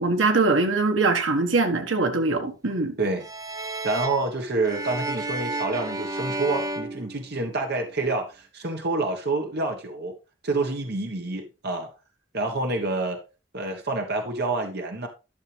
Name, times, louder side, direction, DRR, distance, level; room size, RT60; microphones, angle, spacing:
voice 1, 0.0-2.9, right 3 dB, 80° right, 1.5 m, -22 dB
sound 1, 3.2-7.8, right 2 dB, 20° right, 0.6 m, -32 dB
voice 2, 3.8-10.1 10.4-11.9 12.3-13.2 13.5-15.1, right 2 dB, 55° right, 1.4 m, -27 dB
12.0 x 6.7 x 3.4 m
head